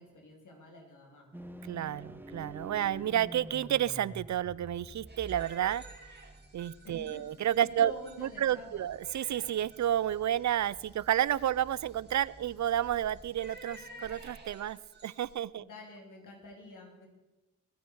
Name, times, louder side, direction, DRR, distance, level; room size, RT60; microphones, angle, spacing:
voice 1, 0.0-1.6 6.8-7.3 7.6-8.9 15.6-17.1, left 2 dB, 80° left, 1 dB, 3.6 m, -48 dB
sound 1, 1.3-14.4, right 1 dB, 5° right, 1.3 m, -50 dB
voice 2, 1.6-5.8 6.5-7.9 8.2-15.6, right 11 dB, 65° right, 21 dB, 0.5 m, -31 dB
sound 2, 5.1-15.4, right 2 dB, 35° right, 3.5 m, -53 dB
23.0 x 9.3 x 4.8 m, 1.0 s
cardioid pair, 50°, 31 cm